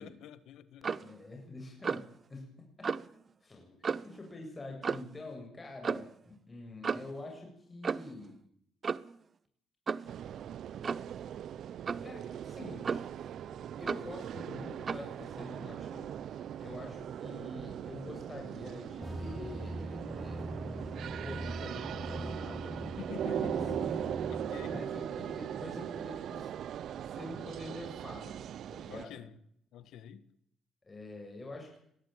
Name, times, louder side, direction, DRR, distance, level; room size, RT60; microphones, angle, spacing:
voice 1, 0.0-1.0 22.8-24.8 28.9-29.4 29.7-30.3, left 9 dB, 80° left, 15 dB, 1.5 m, -47 dB
Clock, 0.8-1.1 1.8-2.1 2.8-3.1 3.8-4.2 4.8-5.1 5.8-6.1 6.8-7.2 7.8-8.2 8.8-9.2 9.9-10.1 10.8-11.1 11.9-12.1 12.8-13.2 13.9-14.1 14.9-15.1, right 5 dB, 40° right, 0.8 m, -34 dB
voice 2, 0.9-2.9 3.4-8.3 12.0-13.3 13.8-16.1 16.6-20.8 21.2-22.9 23.3-23.9 24.7-26.5 27.0-28.4 28.7-29.2 30.8-31.8, left 2 dB, 25° left, 2 dB, 7.4 m, -46 dB
sound 1, 10.1-29.1, right 9 dB, 70° right, 0.9 m, -40 dB
sound 2, 19.0-24.8, right 1 dB, 5° right, 1.1 m, -42 dB
21.0 x 14.0 x 9.2 m, 0.69 s
cardioid pair, 90°, 0 cm